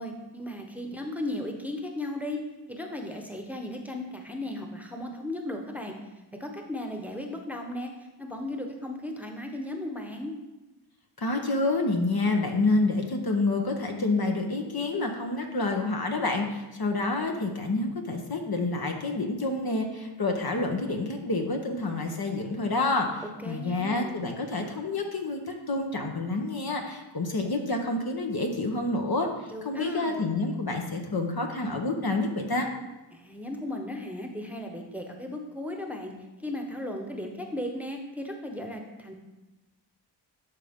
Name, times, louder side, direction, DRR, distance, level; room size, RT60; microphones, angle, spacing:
voice 1, 0.0-2.4 2.7-6.0 6.4-7.9 8.2-10.3 23.2-24.2 29.5-30.3 33.1-36.1 36.4-39.1, left 1 dB, 5° right, 3 dB, 1.1 m, -36 dB
voice 2, 11.2-32.7, left 2 dB, 50° left, 2 dB, 1.1 m, -28 dB
11.0 x 3.7 x 3.7 m, 1.1 s
cardioid pair, 45°, 49 cm